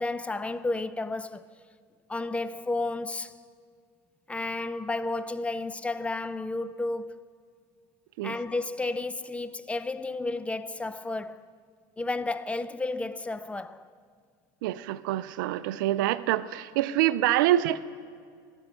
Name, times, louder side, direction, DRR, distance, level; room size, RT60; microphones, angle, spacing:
voice 1, 0.0-1.5 2.1-3.3 4.3-7.1 8.2-11.4 12.0-13.9, left 2 dB, 10° left, 0.3 m, -32 dB
voice 2, 14.6-17.8, right 14 dB, 80° right, 0.4 m, -26 dB
14.0 x 5.3 x 6.9 m
supercardioid pair, 100°, 11 cm